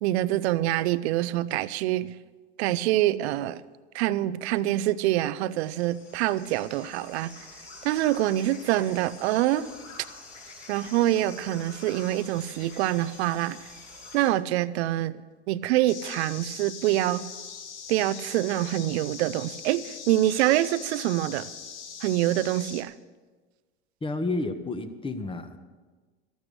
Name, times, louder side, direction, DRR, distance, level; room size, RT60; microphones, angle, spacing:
voice 1, 0.0-2.1 2.6-3.6 3.9-7.4 7.8-9.7 10.7-13.6 14.1-17.2 17.9-21.5 22.0-22.9, right 14 dB, 70° right, 17 dB, 0.7 m, -25 dB
sound 1, 5.5-14.3, left 3 dB, 70° left, 5.6 m, -47 dB
sound 2, 15.9-22.8, left 6 dB, 85° left, 1.5 m, -41 dB
voice 2, 24.0-25.6, left 2 dB, 15° left, 9 dB, 1.3 m, -30 dB
13.5 x 11.5 x 6.5 m, 1.3 s
hypercardioid pair, 90°, 34 cm